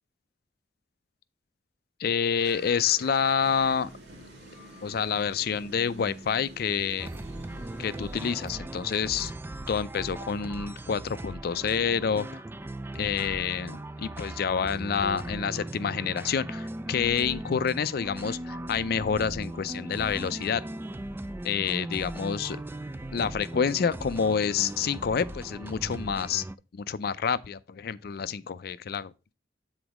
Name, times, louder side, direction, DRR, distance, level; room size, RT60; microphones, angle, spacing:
voice 1, 2.0-3.9 4.8-7.1 7.8-9.3 9.7-12.4 12.9-20.6 21.4-22.6 23.1-26.4 26.7-29.3, left 7 dB, 60° left, 0.4 m, -28 dB
sound 1, 2.4-8.5, right 1 dB, 70° right, 1.8 m, -48 dB
sound 2, 7.0-26.6, right 1 dB, 10° right, 0.3 m, -38 dB
8.0 x 4.0 x 4.7 m
head